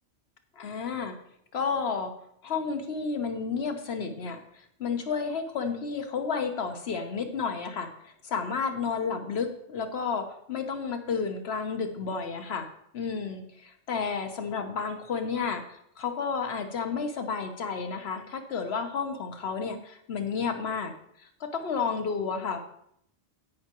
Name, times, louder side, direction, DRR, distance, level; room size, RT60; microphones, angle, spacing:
voice 1, 0.6-1.1 1.5-2.1 2.4-12.7 12.9-20.9 21.2-22.6, left 5 dB, 65° left, 6 dB, 1.2 m, -31 dB
16.5 x 5.7 x 3.0 m, 0.72 s
omnidirectional pair, 1.2 m